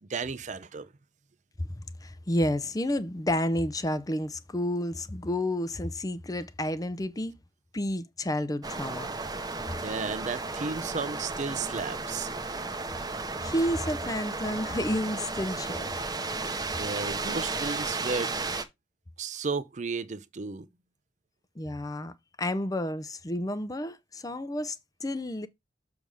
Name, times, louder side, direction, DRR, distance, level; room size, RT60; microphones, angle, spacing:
voice 1, 0.0-0.9 9.8-12.6 16.8-18.3 19.2-20.7, right 4 dB, 45° right, 0.6 m, -34 dB
voice 2, 2.0-7.3 7.7-9.1 13.4-15.9 21.6-22.1 22.4-24.8 25.0-25.5, left 1 dB, 20° left, 0.6 m, -30 dB
sound 1, 8.6-18.6, right 3 dB, 20° right, 0.9 m, -34 dB
6.8 x 3.5 x 6.3 m
head